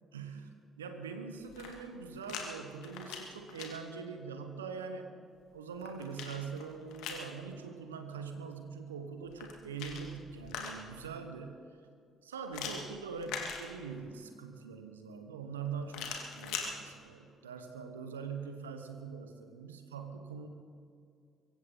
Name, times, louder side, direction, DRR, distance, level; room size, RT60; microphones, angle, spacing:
voice 1, 0.1-0.5 0.8-5.1 5.5-11.6 12.2-20.5, right 5 dB, 85° right, 7 dB, 1.2 m, -43 dB
sound 1, 1.4-2.4 2.8-3.7 5.4-7.3 9.2-11.0 12.5-14.1 15.9-16.7, left 6 dB, 70° left, 2.3 m, -42 dB
23.5 x 15.5 x 4.0 m, 2.3 s
figure-of-eight pair, 50°, 0 cm